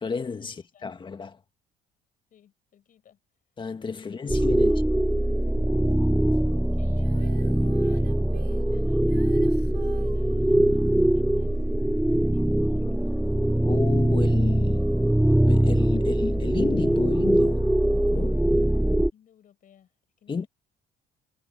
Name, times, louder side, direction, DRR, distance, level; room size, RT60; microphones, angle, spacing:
voice 1, 0.0-1.4 3.6-4.7 13.7-14.9 15.5-17.7 18.1-18.5 20.3-20.5, left 5 dB, 30° left, 2.0 m, -31 dB
voice 2, 2.3-3.2 4.0-4.2 4.5-4.9 5.9-6.1 6.7-8.2 8.5-13.5 19.1-19.9 20.2-20.5, left 9 dB, 55° left, 7.6 m, -58 dB
sound 1, 4.3-19.1, right 1 dB, 5° right, 0.3 m, -22 dB
Female singing, 7.0-10.2 12.2-12.3, right 15 dB, 75° right, 1.4 m, -45 dB
cardioid pair, 110°, 17 cm